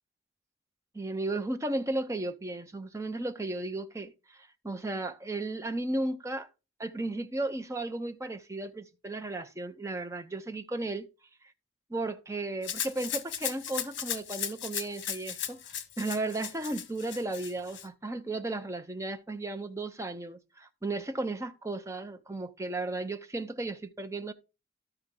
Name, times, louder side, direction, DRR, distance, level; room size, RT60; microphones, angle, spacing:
voice 1, 0.9-6.5 6.8-11.1 11.9-15.6 16.0-24.3, right 2 dB, 15° right, 0.6 m, -35 dB
Rattle (instrument), 12.6-17.9, left 9 dB, 80° left, 1.0 m, -36 dB
13.0 x 4.5 x 3.7 m
head